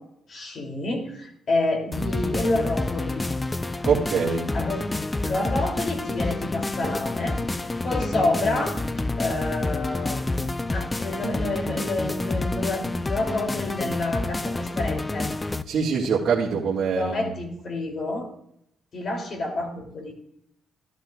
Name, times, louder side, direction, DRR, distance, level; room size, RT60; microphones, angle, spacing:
voice 1, 0.3-3.2 4.5-4.9 5.2-15.3 16.9-18.3 18.9-20.1, left 2 dB, 50° left, 1 dB, 3.0 m, -28 dB
sound 1, 1.9-15.6, left 2 dB, 20° left, 0.5 m, -28 dB
voice 2, 3.8-4.5 15.7-17.2, right 6 dB, 60° right, -6 dB, 1.8 m, -23 dB
13.0 x 11.5 x 2.4 m, 0.73 s
cardioid pair, 90°, 0 cm